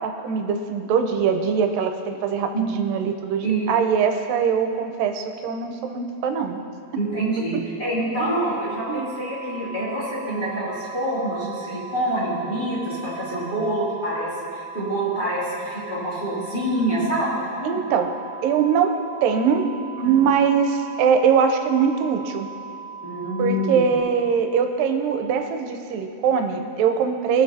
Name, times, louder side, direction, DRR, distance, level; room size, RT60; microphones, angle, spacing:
voice 1, 0.0-6.6 8.2-8.4 8.9-9.1 17.6-18.1 18.4-19.7 20.0-22.5 23.4-27.4, right 6 dB, 80° right, 5 dB, 2.2 m, -22 dB
voice 2, 3.4-3.7 7.0-17.8 20.0-20.2 23.0-23.9, right 1 dB, 15° left, -9 dB, 2.0 m, -26 dB
sound 1, 8.1-24.0, right 5 dB, 75° left, 2.3 m, -38 dB
20.5 x 7.0 x 2.7 m, 2.5 s
omnidirectional pair, 4.3 m